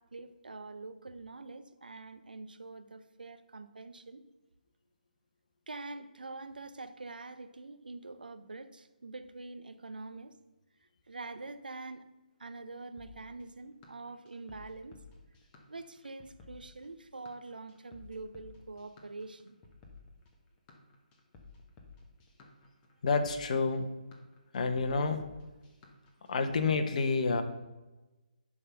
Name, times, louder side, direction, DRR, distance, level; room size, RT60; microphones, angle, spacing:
voice 1, 0.0-4.2 5.7-10.3 11.1-12.0 12.4-15.0 15.7-19.6, right 3 dB, 85° right, 10 dB, 0.7 m, -45 dB
sound 1, 13.0-26.6, left 4 dB, 20° left, 1.2 m, -55 dB
voice 2, 23.0-23.9 24.5-25.2 26.3-27.4, left 4 dB, 55° left, 8 dB, 1.0 m, -29 dB
10.5 x 3.7 x 5.8 m, 1.1 s
figure-of-eight pair, 150°, 5 cm